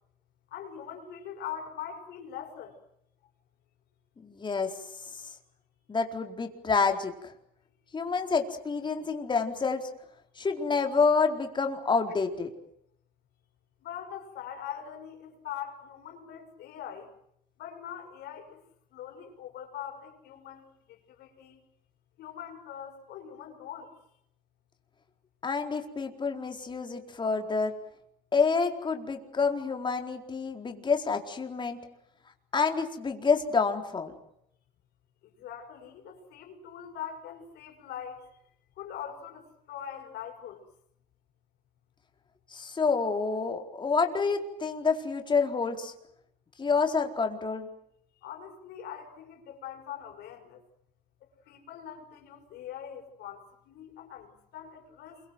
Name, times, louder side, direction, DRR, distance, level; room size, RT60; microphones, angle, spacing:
voice 1, 0.5-2.8 13.8-17.1 17.6-18.6 18.9-20.6 20.9-21.6 22.2-23.9 35.2-38.3 38.8-40.6 48.2-50.6 51.5-55.2, left 9 dB, 75° left, 3 dB, 6.6 m, -42 dB
voice 2, 4.2-4.7 5.9-7.3 7.9-9.9 10.4-12.5 25.4-27.7 28.3-31.8 32.5-34.1 42.5-45.9 46.6-47.7, left 5 dB, 30° left, 4 dB, 4.3 m, -28 dB
28.0 x 23.5 x 7.9 m, 0.74 s
cardioid pair, 110°, 17 cm